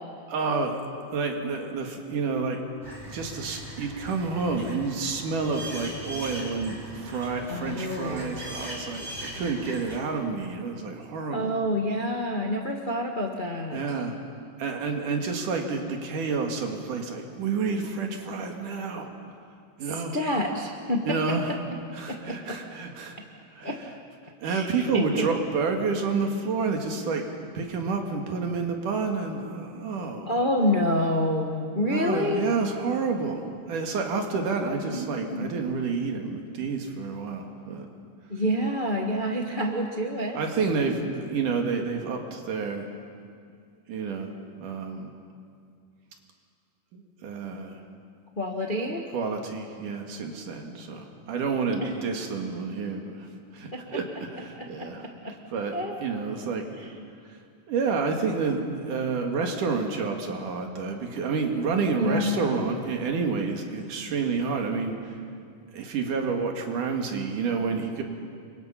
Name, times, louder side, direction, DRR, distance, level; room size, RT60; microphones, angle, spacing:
voice 1, 0.3-0.8 1.1-2.6 3.1-11.5 13.7-14.2 14.6-19.1 19.8-20.2 21.0-21.5 21.9-23.2 23.5-23.7 24.4-27.2 27.5-30.3 31.9-37.9 40.3-42.9 43.9-44.3 44.6-45.1 46.9-47.8 49.1-55.7 56.0-56.8 57.7-65.1 65.7-68.0, right 4 dB, 70° right, 3 dB, 3.5 m, -29 dB
sound 1, 2.8-10.0, equal, 20° right, 4.1 m, -40 dB
voice 2, 7.5-8.4 11.3-13.8 19.8-21.0 22.1-22.5 23.6-23.7 24.4-24.7 24.9-25.2 30.3-32.6 34.8-35.5 38.3-40.4 48.4-49.0 51.8-51.9 53.7-53.8 54.6-54.9 55.2-55.3 55.7-56.0 56.8-56.9 62.0-62.6, left 1 dB, 50° left, 1 dB, 0.6 m, -28 dB
29.0 x 24.0 x 5.7 m, 2.3 s
omnidirectional pair, 3.8 m